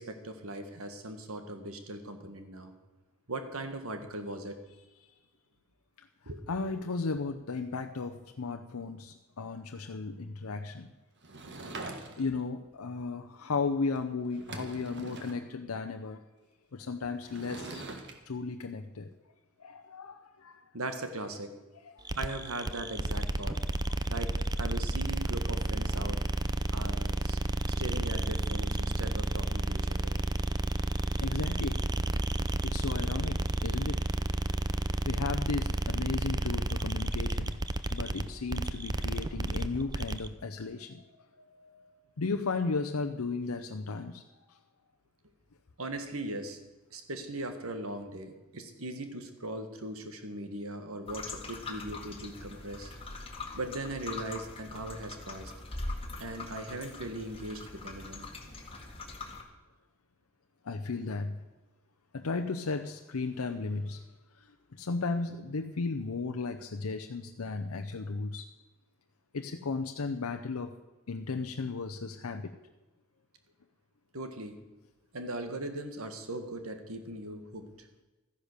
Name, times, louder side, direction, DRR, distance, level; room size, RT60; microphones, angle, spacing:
voice 1, 0.0-2.7 3.3-4.6 6.2-6.8 20.7-21.5 22.1-23.6 24.1-26.2 26.7-27.4 27.8-30.2 45.8-46.6 46.9-52.9 53.5-55.5 56.2-58.3 74.1-74.6 75.1-77.7, right 1 dB, 70° right, 7 dB, 1.7 m, -39 dB
voice 2, 6.5-10.9 12.2-16.2 16.7-17.8 18.3-19.1 19.6-20.6 21.8-22.0 31.2-31.9 32.6-34.0 35.0-37.6 37.9-44.2 60.6-61.4 62.1-64.0 64.4-64.5 64.7-68.5 69.3-70.8 71.1-72.6, left 4 dB, 80° left, 6 dB, 0.7 m, -35 dB
Sliding door / Wood, 11.2-12.4 13.9-14.0 14.3-15.4 17.2-18.1, right 2 dB, 55° right, 1.6 m, -43 dB
sound 1, 22.0-40.3, right 2 dB, 20° right, 0.5 m, -31 dB
sound 2, 51.1-59.4, left 3 dB, 25° left, 1.8 m, -42 dB
13.5 x 10.0 x 6.7 m, 1.1 s
head